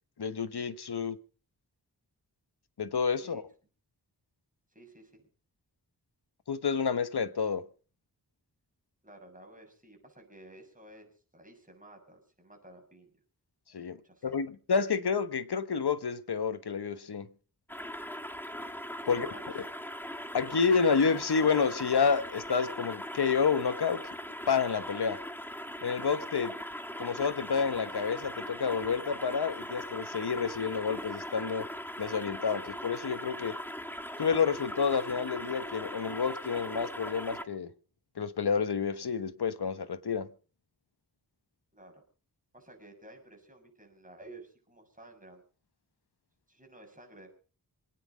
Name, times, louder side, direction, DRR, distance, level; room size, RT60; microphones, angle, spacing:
voice 1, 0.2-1.2 2.8-3.4 6.5-7.6 13.7-14.0 14.2-17.3 19.1-19.3 20.3-24.0 24.5-25.2 25.8-26.5 27.0-31.7 32.0-33.5 34.2-37.7 38.2-40.3, left 6 dB, 70° left, 1.3 m, -29 dB
voice 2, 4.7-5.3 9.0-13.1 14.0-14.4 19.0-19.6 41.7-42.0 42.5-45.4 46.5-47.4, right 1 dB, 20° right, 6.7 m, -53 dB
sound 1, 17.7-37.4, equal, 5° left, 1.4 m, -40 dB
26.0 x 9.6 x 5.1 m
wide cardioid pair, 70°, 40 cm